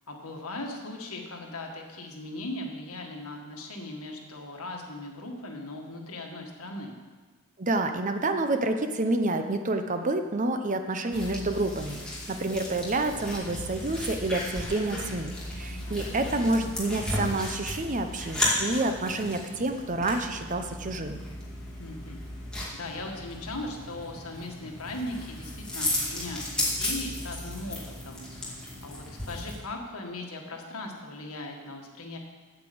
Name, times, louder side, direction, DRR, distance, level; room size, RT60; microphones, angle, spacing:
voice 1, 0.1-7.0 15.6-16.3 21.8-22.2 22.7-32.2, left 2 dB, 75° left, 1 dB, 1.8 m, -39 dB
voice 2, 7.6-12.0 12.3-21.2, right 2 dB, 35° right, 7 dB, 0.7 m, -28 dB
sound 1, 11.1-29.6, left 1 dB, 5° left, 2.3 m, -35 dB
8.7 x 8.2 x 7.8 m, 1.4 s
head